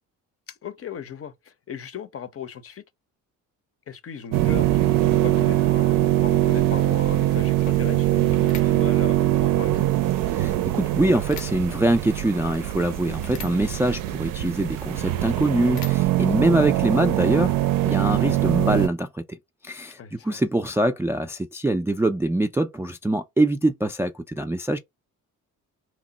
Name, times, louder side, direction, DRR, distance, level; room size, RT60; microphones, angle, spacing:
voice 1, 0.5-2.8 3.9-9.9 13.6-13.7 20.0-20.4, left 8 dB, 40° left, 0.6 m, -38 dB
sound 1, 4.3-18.9, right 15 dB, 70° right, 0.5 m, -22 dB
sound 2, 5.6-17.5, left 4 dB, 85° left, 0.9 m, -46 dB
voice 2, 10.3-17.5 17.8-19.4 19.6-24.8, right 1 dB, 10° right, 0.3 m, -24 dB
3.0 x 2.0 x 3.8 m
supercardioid pair, 70°, 35 cm